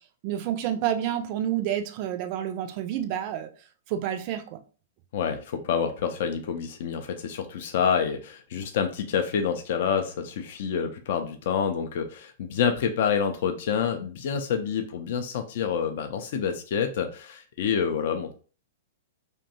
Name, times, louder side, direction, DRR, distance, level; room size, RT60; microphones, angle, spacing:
voice 1, 0.2-3.5 3.9-4.6, right 10 dB, 40° right, 7 dB, 0.4 m, -29 dB
voice 2, 5.1-18.3, left 7 dB, 50° left, 6 dB, 0.3 m, -27 dB
2.6 x 2.2 x 2.7 m, 0.38 s
figure-of-eight pair, 105°, 0 cm